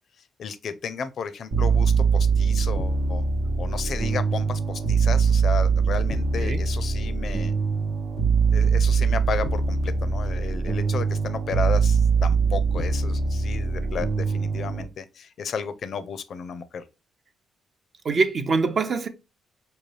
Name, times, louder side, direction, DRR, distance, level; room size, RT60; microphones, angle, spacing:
voice 1, 0.4-3.2 3.6-7.5 8.5-16.8, left 6 dB, 60° left, 0.4 m, -33 dB
sound 1, 1.5-14.8, right 5 dB, 80° right, 0.9 m, -23 dB
voice 2, 18.0-19.1, right 4 dB, 50° right, 0.6 m, -24 dB
5.2 x 2.3 x 3.1 m
cardioid pair, 90°, 0 cm